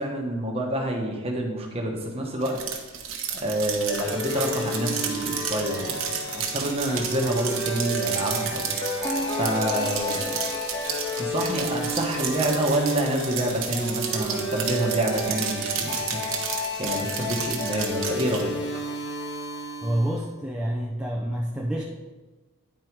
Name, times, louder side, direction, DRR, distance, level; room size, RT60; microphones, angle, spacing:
voice 1, 0.0-2.6 3.3-8.7 9.4-10.4 11.2-16.2 16.8-18.6, right 1 dB, 25° right, 1 dB, 1.1 m, -27 dB
sound 1, 2.4-18.4, right 7 dB, 60° right, 1.0 m, -32 dB
sound 2, 3.9-20.3, left 1 dB, 50° left, 1.1 m, -32 dB
sound 3, 8.6-11.7, equal, 20° left, 1.2 m, -34 dB
voice 2, 19.8-21.8, right 1 dB, 5° right, -4 dB, 0.5 m, -28 dB
9.3 x 4.7 x 4.6 m, 1.3 s
head